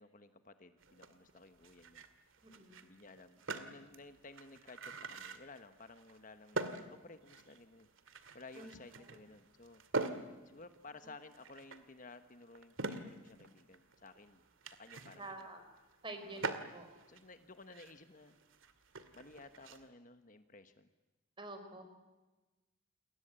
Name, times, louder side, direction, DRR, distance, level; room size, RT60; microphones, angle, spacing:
voice 1, 0.0-2.0 2.8-7.9 8.3-9.8 10.4-15.4 16.2-16.8 17.1-18.4 19.1-20.9, left 3 dB, 40° left, 9 dB, 1.3 m, -56 dB
sound 1, 0.8-19.9, right 3 dB, 75° right, 2.2 m, -45 dB
voice 2, 2.4-2.8 8.6-8.7 9.1-9.2 15.2-15.6 16.0-16.9 21.4-21.8, right 2 dB, 25° right, 7 dB, 4.6 m, -48 dB
29.0 x 22.0 x 8.9 m, 1.1 s
head